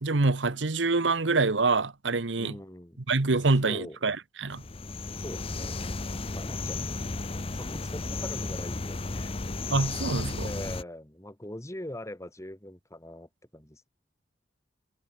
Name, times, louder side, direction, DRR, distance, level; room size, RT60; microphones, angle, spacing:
voice 1, 0.0-2.5 3.1-4.6 9.7-10.5, right 3 dB, 80° right, 1.2 m, -26 dB
voice 2, 2.4-3.0 3.6-4.0 5.2-5.9 6.2-7.2 7.5-9.4 10.4-13.9, left 1 dB, 15° left, 2.6 m, -42 dB
sound 1, 4.5-10.8, left 3 dB, 30° left, 0.8 m, -34 dB
head